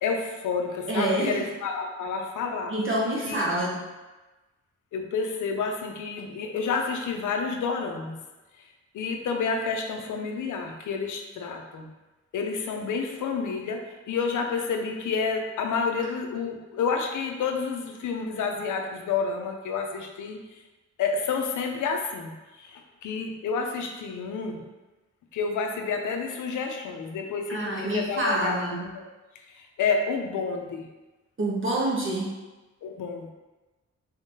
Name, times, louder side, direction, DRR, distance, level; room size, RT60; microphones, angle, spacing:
voice 1, 0.0-2.7 3.3-3.4 4.9-8.2 8.6-8.7 8.9-11.9 12.3-20.4 21.0-24.6 25.3-29.0 29.5-30.8 32.8-33.3, left 5 dB, 85° left, 3 dB, 0.6 m, -29 dB
voice 2, 0.9-1.4 2.7-3.8 27.5-28.8 31.4-32.3, right 1 dB, 45° right, -4 dB, 1.3 m, -27 dB
4.0 x 3.5 x 2.8 m, 1.1 s
cardioid pair, 55°, 30 cm